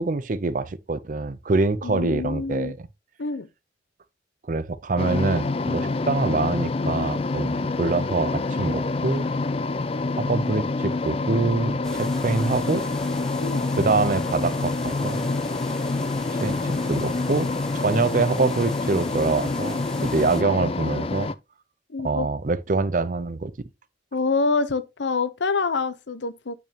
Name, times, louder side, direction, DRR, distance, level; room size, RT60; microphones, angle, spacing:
voice 1, 0.0-2.9 4.5-9.3 10.2-12.8 13.8-15.3 16.3-21.3 22.0-23.5, right 3 dB, 45° right, 0.5 m, -25 dB
voice 2, 1.8-2.7 3.2-3.5 13.4-13.6 21.9-22.3 24.1-26.5, left 4 dB, 85° left, 0.7 m, -26 dB
sound 1, 5.0-21.3, left 3 dB, 30° left, 0.4 m, -27 dB
sound 2, 11.8-20.4, equal, 5° left, 0.7 m, -39 dB
8.8 x 6.0 x 2.8 m
head